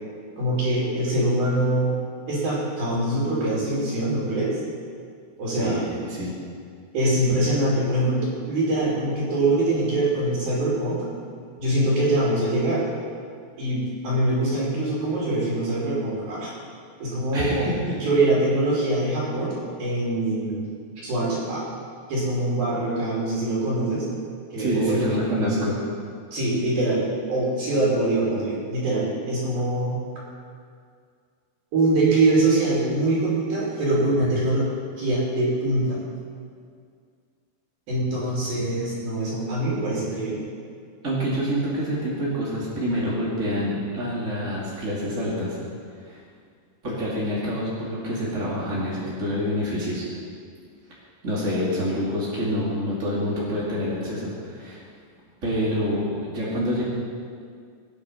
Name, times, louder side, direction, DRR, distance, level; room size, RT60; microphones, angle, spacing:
voice 1, 0.4-2.0 2.3-4.6 5.4-5.8 6.9-11.0 11.6-12.8 13.6-16.5 17.0-17.7 18.0-20.7 21.0-21.6 22.1-24.1 24.5-25.7 26.3-27.0 27.3-30.0 31.7-34.7 35.0-36.0 37.9-40.4, right 2 dB, 50° right, -7 dB, 4.4 m, -23 dB
voice 2, 5.6-6.3 17.3-18.0 24.6-25.7 41.0-45.6 46.0-46.2 46.8-50.1 51.2-54.8 55.4-56.8, equal, 35° right, -7 dB, 1.2 m, -27 dB
18.5 x 9.5 x 5.7 m, 2.2 s
omnidirectional pair, 5.8 m